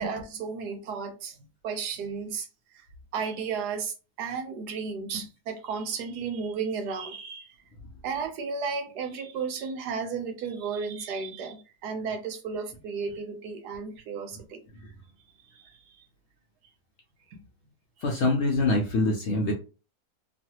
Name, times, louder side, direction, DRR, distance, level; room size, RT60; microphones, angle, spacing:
voice 1, 0.0-1.4 1.6-2.9 3.1-7.5 8.0-14.6 15.5-16.0 17.3-17.4, right 5 dB, 85° right, 1.3 m, -34 dB
voice 2, 18.0-19.5, left 2 dB, 65° left, 0.7 m, -24 dB
3.1 x 2.4 x 2.8 m
omnidirectional pair, 1.7 m